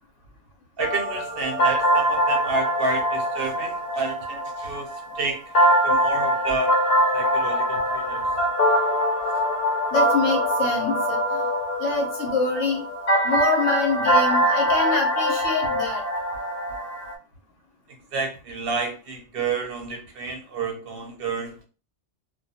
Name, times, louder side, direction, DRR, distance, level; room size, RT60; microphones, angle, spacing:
sound 1, 0.8-17.1, equal, 60° left, 0.7 m, -23 dB
voice 1, 0.8-5.4 5.8-6.7 7.1-8.3 18.1-21.6, right 4 dB, 60° right, 4 dB, 0.7 m, -30 dB
voice 2, 9.9-11.4 11.8-12.8 13.2-16.0, left 4 dB, 90° left, 1 dB, 1.1 m, -25 dB
2.3 x 2.2 x 2.6 m, 0.35 s
omnidirectional pair, 1.2 m